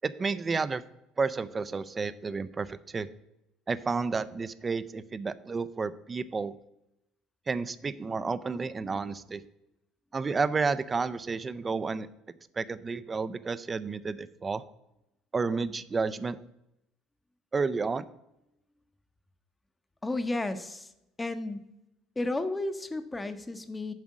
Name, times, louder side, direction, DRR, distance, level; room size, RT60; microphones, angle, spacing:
voice 1, 0.0-0.8 1.2-3.1 3.7-6.5 7.5-9.4 10.1-12.1 12.6-14.6 15.3-16.4 17.5-18.1, right 4 dB, 20° right, 14 dB, 0.4 m, -31 dB
voice 2, 20.0-20.9 21.2-21.7 22.2-23.9, left 2 dB, 10° left, 10 dB, 0.7 m, -32 dB
7.4 x 4.9 x 7.3 m, 0.87 s
cardioid pair, 140°, 0 cm